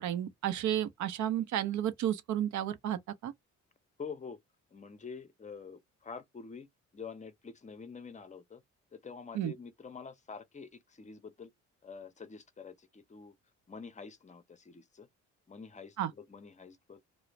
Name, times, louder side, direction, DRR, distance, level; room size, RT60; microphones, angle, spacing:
voice 1, 0.0-3.3 9.3-9.5 16.0-16.1, right 11 dB, 70° right, 0.6 m, -32 dB
voice 2, 4.0-4.4 4.7-6.7 6.9-8.6 8.9-11.5 11.8-13.3 13.7-15.1 15.5-17.0, left 5 dB, 25° left, 0.6 m, -47 dB
2.4 x 2.0 x 2.9 m
cardioid pair, 90°, 30 cm